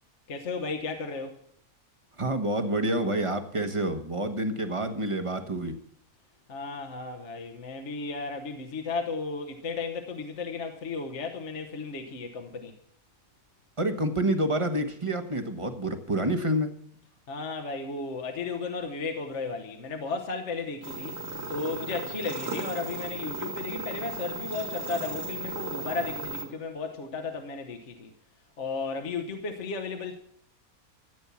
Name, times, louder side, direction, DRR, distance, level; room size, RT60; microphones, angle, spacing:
voice 1, 0.3-1.3 6.5-12.7 17.3-28.1 28.6-30.2, left 4 dB, 55° left, 1.4 m, -34 dB
voice 2, 2.2-5.7 13.8-16.7, right 1 dB, 25° right, 1.2 m, -28 dB
sound 1, 20.8-26.4, right 3 dB, 45° right, 2.2 m, -36 dB
14.0 x 8.9 x 7.1 m
omnidirectional pair, 1.5 m